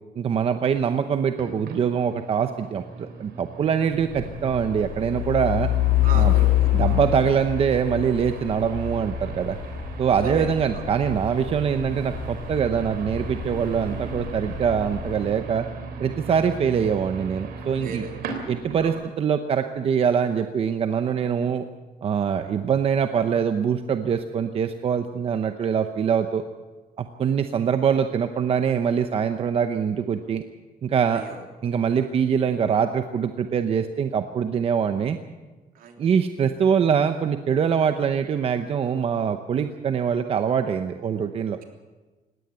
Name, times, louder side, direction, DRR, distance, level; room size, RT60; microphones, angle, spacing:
voice 1, 0.2-5.7 6.1-6.3 6.7-9.6 10.0-15.7 16.0-18.1 18.5-21.6 22.0-26.4 27.0-30.4 30.8-31.2 31.6-35.2 36.0-41.6, right 7 dB, 40° right, 8 dB, 0.8 m, -23 dB
sound 1, 1.3-18.9, right 4 dB, 90° right, 3.5 m, -38 dB
Truck, 3.9-15.4, left 14 dB, 65° left, 5.5 m, -27 dB
voice 2, 6.0-7.0 10.2-10.8 17.8-18.1 18.8-19.0 31.1-31.4 35.7-35.9, right 5 dB, 70° right, 4 dB, 3.3 m, -35 dB
19.5 x 17.5 x 8.2 m, 1.3 s
cardioid pair, 175°, 16 cm